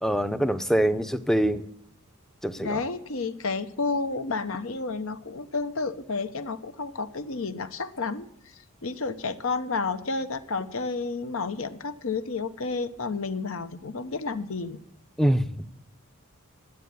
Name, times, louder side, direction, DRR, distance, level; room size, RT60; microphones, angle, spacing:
voice 1, 0.0-1.7 2.4-2.8 15.2-15.5, right 1 dB, ahead, 11 dB, 0.6 m, -24 dB
voice 2, 2.6-8.3 8.8-14.8, left 4 dB, 70° left, 10 dB, 0.9 m, -31 dB
12.5 x 8.4 x 9.3 m, 0.72 s
head